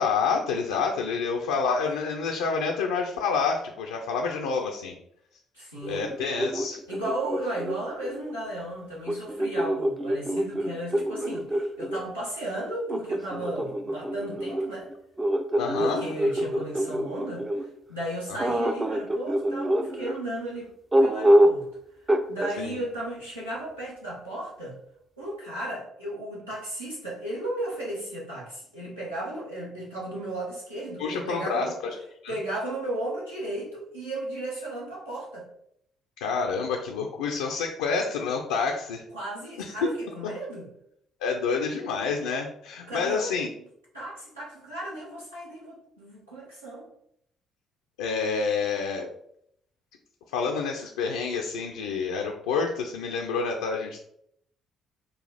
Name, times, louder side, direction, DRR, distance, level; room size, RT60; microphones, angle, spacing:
voice 1, 0.0-4.9 5.8-6.8 15.6-16.1 18.4-18.5 22.6-22.8 31.0-31.9 32.2-32.3 36.2-39.0 39.6-39.9 41.2-43.5 48.0-49.1 50.3-54.0, left 5 dB, 70° left, 1 dB, 0.4 m, -28 dB
voice 2, 5.5-6.1 6.9-14.9 15.8-17.5 17.9-20.7 21.0-21.6 22.0-24.8 25.2-31.8 32.3-35.5 39.1-40.7 42.8-43.4 43.9-46.9, right 1 dB, 90° right, -8 dB, 1.3 m, -35 dB
sound 1, 5.8-8.2 9.1-12.0 12.9-17.7 18.4-20.2 20.9-21.7 22.1-22.5, right 1 dB, 25° right, 0.5 m, -26 dB
4.8 x 2.3 x 3.9 m, 0.72 s
figure-of-eight pair, 45°, 0 cm